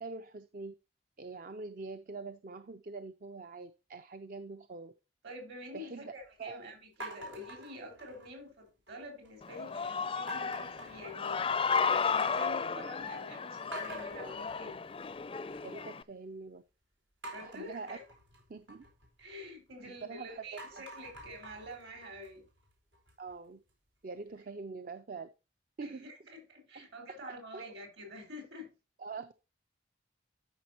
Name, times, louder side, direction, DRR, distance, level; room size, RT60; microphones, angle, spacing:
voice 1, 0.0-0.7 1.2-4.9 5.7-6.1 6.4-6.7 15.6-16.6 17.4-18.0 18.5-18.8 19.2-19.4 19.8-20.8 23.2-23.6 24.0-25.3 25.8-26.1 26.7-27.7 29.0-29.3, right 4 dB, 50° right, 0.5 m, -44 dB
voice 2, 5.2-11.6 11.8-14.8 17.3-18.0 19.2-22.5 25.8-28.7, left 1 dB, 65° right, 4.7 m, -47 dB
sound 1, 7.0-8.5 8.9-9.4 10.3-11.8 12.1-12.7 13.1-13.2 13.7-15.8 17.2-20.0 20.4-23.3, right 1 dB, 90° right, 4.2 m, -48 dB
Human voice / Cheering, 9.4-16.0, left 5 dB, 30° left, 0.4 m, -34 dB
12.5 x 6.1 x 3.0 m
head